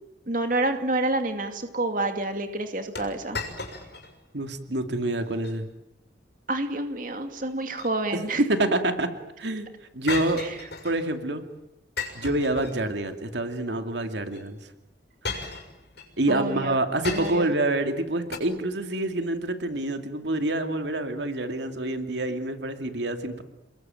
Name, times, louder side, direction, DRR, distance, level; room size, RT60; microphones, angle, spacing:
voice 1, 0.3-3.4 6.5-8.4 10.4-10.6 16.3-16.8 17.1-17.5, right 2 dB, 45° right, 6 dB, 2.5 m, -28 dB
sound 1, 3.0-4.1 4.5-4.6 5.2-5.6 7.5-8.3 10.1-11.1 12.0-13.1 14.3-14.4 15.2-16.1 17.0-17.6 18.3-18.4, left 4 dB, 65° left, 6.4 m, -35 dB
voice 2, 4.3-5.7 8.4-9.1 9.4-9.7 9.9-10.4 10.8-11.4 12.1-14.7 16.2-23.4, right 2 dB, 70° right, 6 dB, 2.5 m, -27 dB
30.0 x 21.5 x 9.2 m, 0.87 s
head